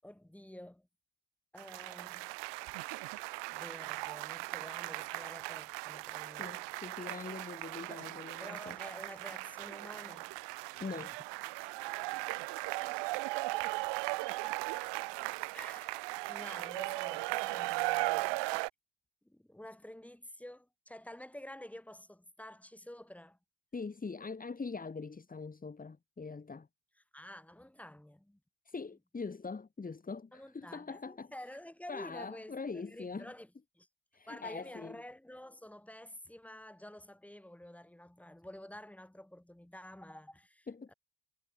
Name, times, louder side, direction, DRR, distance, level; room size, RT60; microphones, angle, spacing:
voice 1, 0.0-0.9 1.5-2.4 3.5-6.5 8.4-10.4 13.6-13.9 14.2-14.5 15.5-18.6 19.2-23.4 27.1-28.4 30.3-33.5 33.7-33.9 34.3-40.9, left 1 dB, 5° left, 5.9 m, -50 dB
sound 1, 1.6-18.7, right 23 dB, 80° right, 2.9 m, -38 dB
voice 2, 6.4-8.8 10.8-11.2 23.7-26.7 28.7-31.3 31.9-33.3 34.1-35.0 40.7-40.9, left 4 dB, 20° left, 3.4 m, -43 dB
cardioid pair, 105°, 42 cm